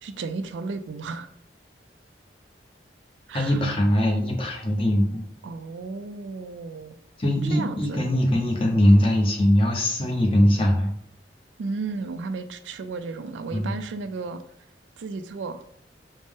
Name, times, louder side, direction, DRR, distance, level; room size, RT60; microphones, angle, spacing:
voice 1, 0.0-1.3 3.3-3.6 5.4-7.0 7.5-8.0 11.6-14.4 15.0-15.6, right 4 dB, 80° right, 10 dB, 0.3 m, -34 dB
voice 2, 3.3-5.3 7.2-10.9 13.5-13.8, left 1 dB, 30° left, 0 dB, 0.7 m, -21 dB
5.2 x 2.0 x 3.5 m, 0.68 s
head